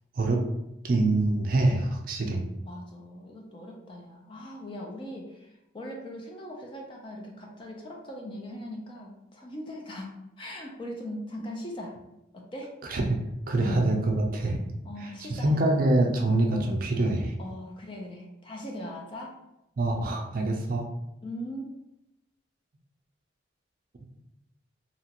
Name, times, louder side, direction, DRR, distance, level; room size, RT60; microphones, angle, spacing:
voice 1, 0.8-2.4 12.8-13.2 13.5-14.6 15.3-17.4 19.8-20.9, right 2 dB, 45° right, 2 dB, 0.4 m, -25 dB
voice 2, 2.6-10.1 10.4-12.0 12.3-12.7 13.6-13.9 14.8-15.6 17.4-19.4 21.2-21.7, left 1 dB, 25° left, 0 dB, 0.4 m, -40 dB
2.9 x 2.4 x 2.8 m, 0.87 s
head